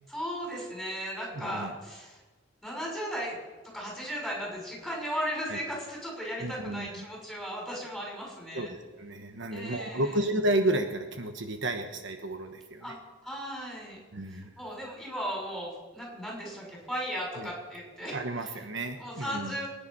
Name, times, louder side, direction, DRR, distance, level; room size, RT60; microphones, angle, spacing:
voice 1, 0.1-2.2 2.6-3.4 3.7-8.7 9.5-10.2 12.8-13.0 13.2-14.0 14.3-18.5 19.0-19.7, equal, ahead, -3 dB, 6.4 m, -36 dB
voice 2, 1.3-1.7 5.5-5.6 6.4-6.9 8.5-13.0 14.1-14.5 17.4-17.5 18.1-19.6, right 1 dB, 65° right, 6 dB, 1.2 m, -32 dB
23.0 x 10.5 x 5.6 m, 1.2 s
head